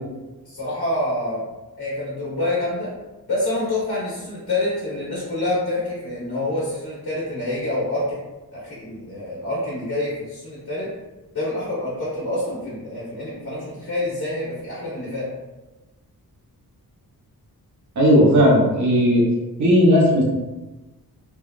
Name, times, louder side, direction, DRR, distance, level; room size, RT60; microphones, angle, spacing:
voice 1, 0.4-1.4 1.8-2.9 3.3-8.2 8.5-10.9 11.3-15.3, left 1 dB, 70° left, -8 dB, 1.2 m, -27 dB
voice 2, 18.0-19.2 19.6-20.2, equal, 50° right, -3 dB, 0.8 m, -15 dB
3.4 x 2.3 x 2.4 m, 1.1 s
wide cardioid pair, 160°, 37 cm